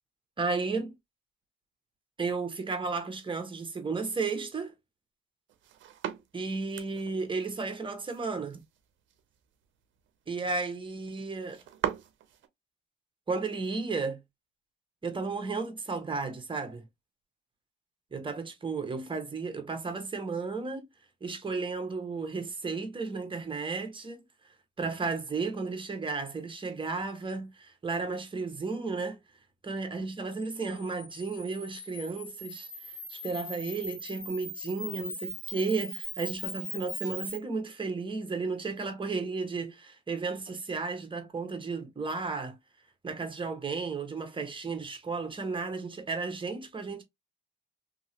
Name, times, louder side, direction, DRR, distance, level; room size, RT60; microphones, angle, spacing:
voice 1, 0.4-0.9 2.2-4.7 6.3-8.6 10.3-11.6 13.3-14.2 15.0-16.8 18.1-20.9 21.2-24.2 24.8-29.2 29.7-42.6 43.0-47.0, right 4 dB, 25° right, 1.2 m, -33 dB
sound 1, 5.5-12.5, right 10 dB, 75° right, 0.7 m, -41 dB
Camera, 30.4-37.4, left 1 dB, 15° left, 2.1 m, -41 dB
2.9 x 2.9 x 2.8 m
cardioid pair, 90°, 20 cm